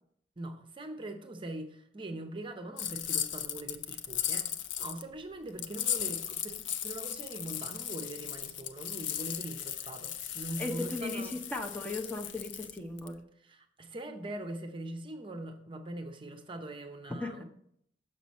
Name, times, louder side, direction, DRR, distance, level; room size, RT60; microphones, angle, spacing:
voice 1, 0.4-4.5 4.8-11.4 13.4-17.4, right 1 dB, 30° right, 6 dB, 0.7 m, -42 dB
sound 1, 2.8-5.0 5.6-13.1, left 10 dB, 85° left, 0.5 m, -37 dB
voice 2, 10.6-13.2 17.2-17.4, left 2 dB, 10° left, 3 dB, 0.7 m, -37 dB
6.5 x 5.9 x 4.2 m, 0.69 s
head